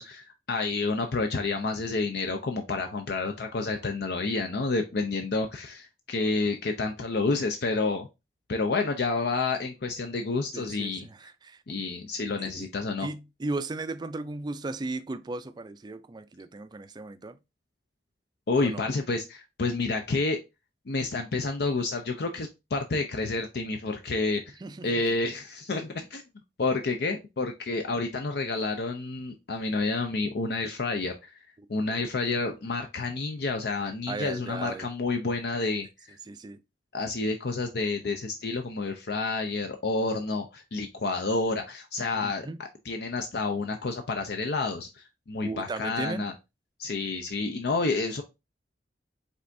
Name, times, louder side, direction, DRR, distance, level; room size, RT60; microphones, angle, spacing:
voice 1, 0.0-8.1 8.5-11.1 11.7-13.1 18.5-20.4 20.9-24.6 24.8-26.2 26.6-31.3 31.7-36.2 36.9-46.3 46.8-48.2, left 3 dB, 65° left, 0.6 m, -29 dB
voice 2, 10.5-11.6 12.4-12.7 13.0-17.4 18.6-18.9 24.6-25.0 31.6-32.0 34.1-34.9 36.3-36.6 42.1-42.6 45.4-46.3, right 3 dB, 25° right, 0.4 m, -36 dB
5.3 x 3.4 x 2.6 m
head